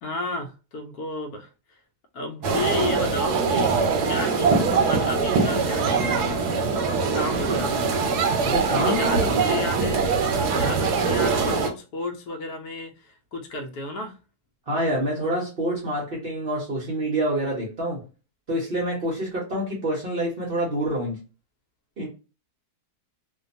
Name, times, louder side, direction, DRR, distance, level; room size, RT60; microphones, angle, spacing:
voice 1, 0.0-1.5 2.1-4.6 4.9-6.3 7.1-7.9 8.7-10.0 10.3-14.2, left 2 dB, 75° left, 1.1 m, -32 dB
sound 1, 2.4-11.7, right 4 dB, 85° right, 1.2 m, -22 dB
voice 2, 8.4-9.4 14.7-18.0 18.5-21.2 22.0-22.1, right 1 dB, 50° right, 0.7 m, -27 dB
2.7 x 2.2 x 2.5 m
omnidirectional pair, 1.7 m